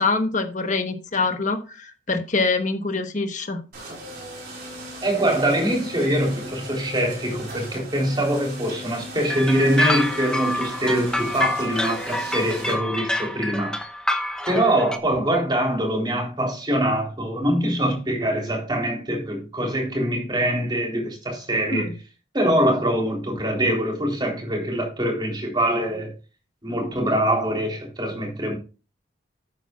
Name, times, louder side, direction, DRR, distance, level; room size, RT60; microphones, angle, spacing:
voice 1, 0.0-3.6 21.7-21.9, left 3 dB, 40° left, 1.2 m, -25 dB
sound 1, 3.7-12.7, right 1 dB, 55° right, 4.2 m, -38 dB
voice 2, 5.0-13.8 14.5-22.0 22.3-26.1 26.6-28.5, right 1 dB, 25° right, 3.7 m, -23 dB
sound 2, 9.3-15.0, left 1 dB, 5° left, 0.8 m, -27 dB
11.5 x 9.1 x 2.4 m
head